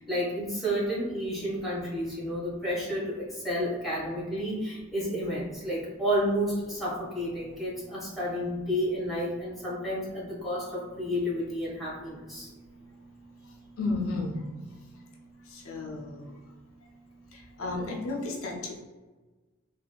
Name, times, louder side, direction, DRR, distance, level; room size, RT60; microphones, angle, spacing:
voice 1, 0.0-12.5, equal, ahead, -9 dB, 1.3 m, -31 dB
voice 2, 13.8-14.4 15.5-16.3 17.6-18.8, left 2 dB, 75° left, -2 dB, 0.6 m, -32 dB
3.4 x 2.6 x 2.2 m, 1.3 s
head